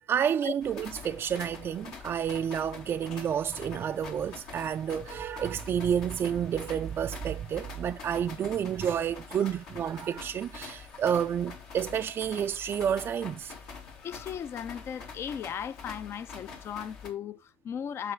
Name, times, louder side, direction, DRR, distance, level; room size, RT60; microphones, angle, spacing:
voice 1, 0.1-13.5, right 8 dB, 45° right, 0.3 m, -30 dB
sound 1, 0.6-17.1, left 5 dB, 75° left, 2.1 m, -45 dB
voice 2, 14.0-18.1, left 8 dB, 50° left, 0.5 m, -37 dB
6.0 x 4.6 x 4.5 m
hypercardioid pair, 65°, 6 cm